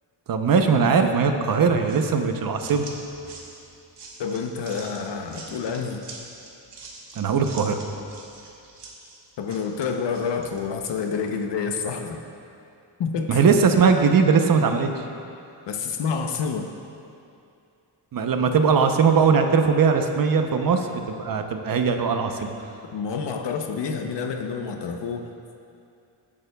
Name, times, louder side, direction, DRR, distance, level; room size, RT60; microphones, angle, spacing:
voice 1, 0.3-2.8 7.2-7.8 13.3-14.9 18.1-22.5, right 5 dB, 50° right, 6 dB, 0.8 m, -20 dB
sound 1, 1.9-11.0, right 3 dB, 70° right, 1.6 m, -44 dB
voice 2, 4.2-6.0 9.4-12.2 13.0-13.4 14.2-14.3 15.7-16.7 22.9-25.3, left 5 dB, 70° left, 4 dB, 0.8 m, -28 dB
18.0 x 8.6 x 2.3 m, 2.6 s
wide cardioid pair, 135°, 43 cm